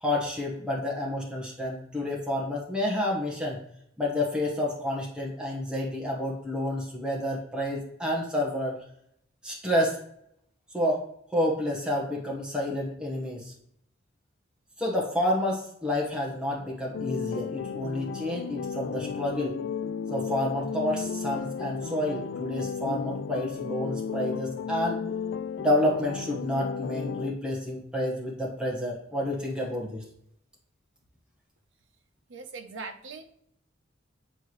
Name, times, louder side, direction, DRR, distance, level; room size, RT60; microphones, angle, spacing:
voice 1, 0.0-3.6 4.0-8.8 9.4-10.0 10.7-11.0 11.3-13.5 14.8-19.6 20.1-25.0 25.6-30.0, left 1 dB, 5° right, -3 dB, 1.3 m, -29 dB
sound 1, 16.9-27.3, left 6 dB, 70° left, 0.3 m, -34 dB
voice 2, 32.3-33.3, right 4 dB, 80° right, 6 dB, 0.8 m, -40 dB
8.8 x 4.6 x 3.2 m, 0.71 s
head